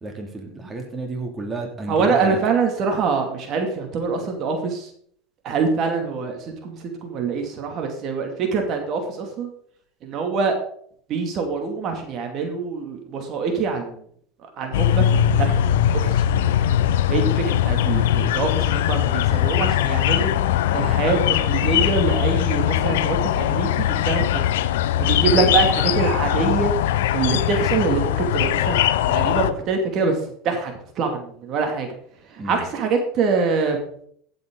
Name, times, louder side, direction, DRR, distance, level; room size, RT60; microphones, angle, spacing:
voice 1, 0.0-2.4 24.9-25.6 32.4-32.6, right 2 dB, 20° right, 3 dB, 2.5 m, -32 dB
voice 2, 1.9-4.9 5.4-9.5 10.0-10.6 11.1-14.0 14.6-15.0 15.3-15.5 16.0-16.2 17.1-20.3 20.7-24.4 25.0-26.7 27.1-31.9 32.3-33.8, right 5 dB, 45° right, 4 dB, 2.4 m, -24 dB
sound 1, 14.7-29.5, left 11 dB, 85° left, 0.6 m, -20 dB
15.5 x 7.8 x 3.9 m, 0.64 s
supercardioid pair, 110°, 0 cm